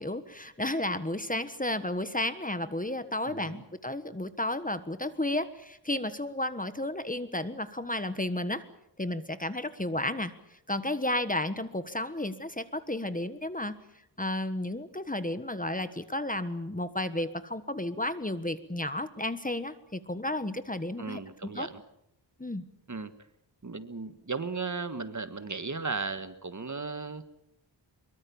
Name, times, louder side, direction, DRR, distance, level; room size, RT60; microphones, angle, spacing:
voice 1, 0.0-8.6 9.0-10.3 10.7-13.7 14.2-21.7 22.4-22.6, left 1 dB, 20° left, 12 dB, 1.3 m, -32 dB
voice 2, 3.3-3.6 21.0-21.8 22.9-23.1 23.6-27.2, right 4 dB, 40° right, 11 dB, 1.6 m, -36 dB
23.5 x 22.5 x 7.1 m, 0.81 s
wide cardioid pair, 90°, 44 cm